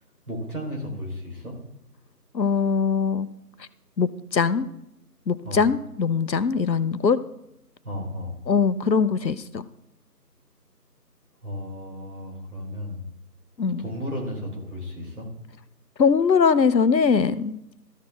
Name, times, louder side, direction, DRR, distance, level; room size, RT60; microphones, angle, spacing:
voice 1, 0.3-1.6 5.4-5.7 7.8-8.4 11.4-13.1 13.8-15.3, left 1 dB, 60° right, -2 dB, 3.6 m, -34 dB
voice 2, 2.3-3.3 4.0-4.7 5.3-7.2 8.5-9.6 13.6-13.8 16.0-17.6, left 5 dB, 85° left, 14 dB, 0.7 m, -21 dB
13.5 x 6.7 x 3.3 m, 0.81 s
figure-of-eight pair, 175°, 50 cm